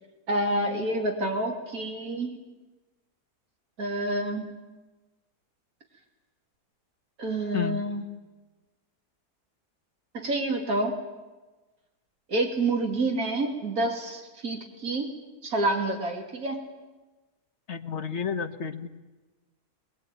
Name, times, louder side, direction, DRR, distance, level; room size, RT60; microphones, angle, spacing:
voice 1, 0.3-2.4 3.8-4.6 7.2-8.0 10.1-11.0 12.3-15.1 15.4-16.6, right 2 dB, 60° right, 1 dB, 3.3 m, -28 dB
voice 2, 7.5-7.8 17.7-18.9, left 7 dB, 45° left, 7 dB, 1.5 m, -31 dB
23.0 x 21.0 x 9.1 m, 1.2 s
omnidirectional pair, 1.7 m